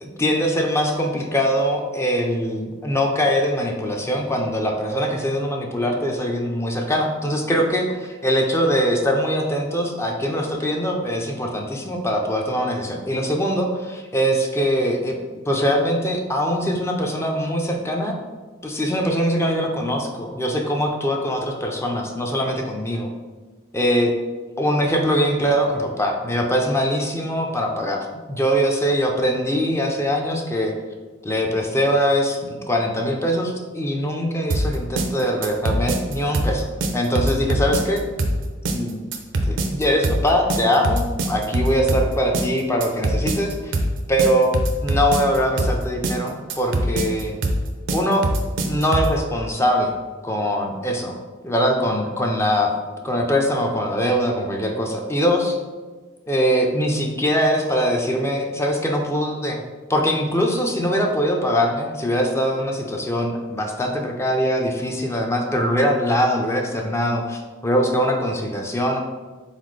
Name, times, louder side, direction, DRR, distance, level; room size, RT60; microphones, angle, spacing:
voice 1, 0.0-15.1 15.5-18.2 18.6-23.1 23.7-24.1 24.6-30.7 31.2-36.7 36.9-38.0 38.7-39.0 39.5-44.5 44.8-47.3 47.9-48.3 48.6-49.9 50.2-51.2 51.4-52.7 53.0-55.6 56.3-59.6 59.9-69.0, equal, 15° left, 2 dB, 0.4 m, -22 dB
sound 1, 34.5-49.2, right 1 dB, 65° right, 0.5 m, -23 dB
4.0 x 4.0 x 3.1 m, 1.3 s
head